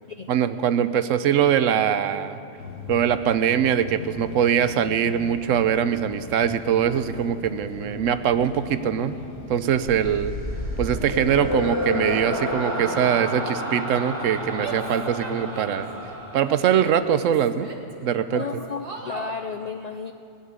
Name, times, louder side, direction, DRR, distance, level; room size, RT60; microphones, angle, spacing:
voice 1, 0.3-2.4 2.9-9.2 9.5-10.3 10.8-15.9 16.3-17.7 18.0-18.4, right 9 dB, 90° right, 12 dB, 1.0 m, -22 dB
sound 1, 2.6-11.9, left 4 dB, 85° left, 1.5 m, -39 dB
sound 2, 9.9-17.2, left 1 dB, 15° right, 1.9 m, -30 dB
Female speech woman speaking / Yell, 14.6-15.9 16.4-17.9 18.3-19.4, right 4 dB, 45° right, 1.5 m, -39 dB
voice 2, 18.3-20.1, left 5 dB, 65° left, 7 dB, 0.4 m, -33 dB
17.5 x 7.2 x 9.6 m, 2.5 s
omnidirectional pair, 1.3 m